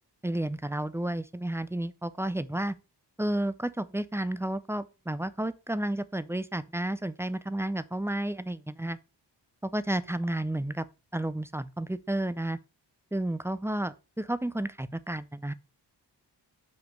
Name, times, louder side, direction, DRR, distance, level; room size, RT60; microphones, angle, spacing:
voice 1, 0.2-2.7 3.2-9.0 9.6-10.9 11.1-12.6 13.1-15.5, right 1 dB, 5° right, 0.4 m, -31 dB
6.3 x 5.0 x 5.1 m
wide cardioid pair, 110°, 42 cm